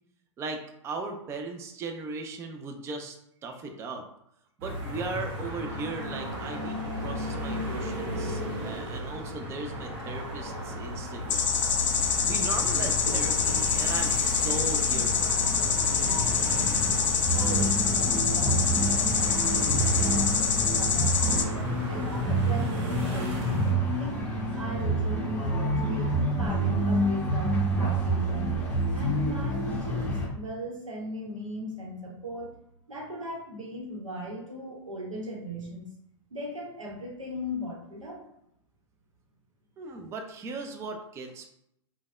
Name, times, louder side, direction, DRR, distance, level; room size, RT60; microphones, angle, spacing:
voice 1, 0.4-3.2 3.4-4.0 4.6-11.5 12.3-15.4 39.8-41.5, right 3 dB, 15° right, 4 dB, 0.3 m, -37 dB
sound 1, 4.6-23.7, equal, 50° right, 1.0 m, -35 dB
sound 2, 11.3-21.4, left 6 dB, 75° left, 0.5 m, -26 dB
sound 3, 17.3-30.3, right 1 dB, 10° left, 0.8 m, -28 dB
voice 2, 17.3-21.5 21.9-24.2 24.5-28.6 28.9-32.5 32.9-35.9 36.3-38.2, equal, 90° right, -1 dB, 0.8 m, -38 dB
3.2 x 2.1 x 2.3 m, 0.76 s
hypercardioid pair, 105°, 16 cm